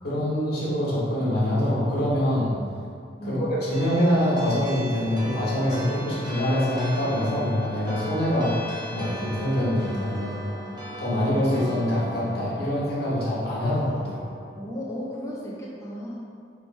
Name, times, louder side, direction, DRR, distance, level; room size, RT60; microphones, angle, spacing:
voice 1, 0.0-2.5 3.2-10.6 11.0-14.2, equal, 60° left, -8 dB, 1.3 m, -25 dB
sound 1, 3.7-14.5, equal, 25° right, 0.6 m, -38 dB
voice 2, 14.5-16.2, equal, 15° left, -6 dB, 0.7 m, -34 dB
4.7 x 3.5 x 2.6 m, 2.3 s
head